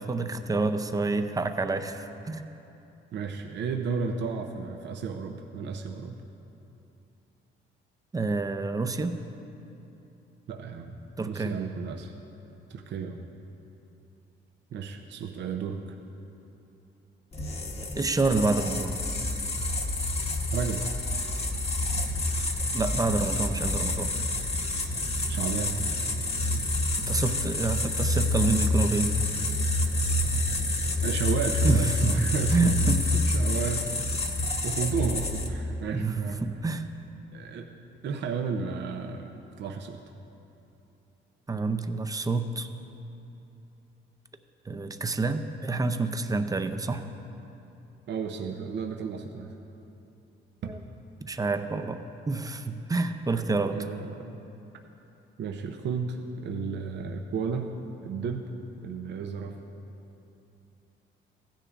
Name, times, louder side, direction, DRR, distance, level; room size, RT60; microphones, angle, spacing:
voice 1, 0.1-2.4 8.1-9.2 11.2-11.6 17.9-19.0 22.7-24.1 27.1-29.1 31.6-33.0 35.9-36.9 41.5-42.7 44.7-47.0 50.7-50.8 51.2-52.0 52.3-53.8, right 3 dB, 20° right, 8 dB, 0.5 m, -28 dB
voice 2, 3.1-6.2 10.5-10.9 11.3-12.1 12.7-13.3 14.7-15.9 20.5-20.8 25.3-25.8 31.0-33.9 34.6-36.4 37.3-37.7 38.0-40.0 48.1-49.5 50.6-50.7 53.7-54.3 55.4-57.7 58.0-58.5 58.8-59.6, right 5 dB, 65° right, 3 dB, 0.6 m, -33 dB
sound 1, 17.3-35.7, left 2 dB, 30° left, 1.0 m, -28 dB
15.5 x 10.0 x 2.5 m, 2.9 s
cardioid pair, 90°, 20 cm